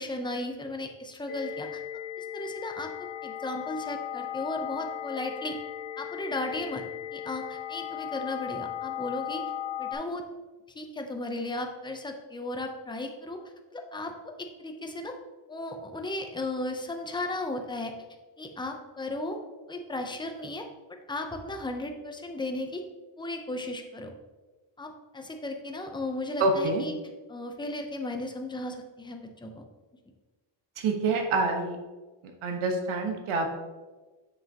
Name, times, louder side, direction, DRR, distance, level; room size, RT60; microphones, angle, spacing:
voice 1, 0.0-1.8 2.2-2.9 3.2-5.6 6.0-6.8 7.1-9.4 9.8-10.2 10.7-13.4 13.7-15.1 15.5-17.9 18.4-19.4 19.7-20.7 21.1-22.8 23.2-24.1 24.8-26.9 27.3-29.5, left 2 dB, 10° left, 4 dB, 0.5 m, -35 dB
sound 1, 1.3-9.9, left 11 dB, 70° left, 1.2 m, -37 dB
voice 2, 26.4-26.8 30.8-31.8 32.4-33.5, right 3 dB, 90° right, 3 dB, 1.2 m, -26 dB
7.4 x 6.1 x 2.8 m, 1.3 s
cardioid pair, 145°, 48 cm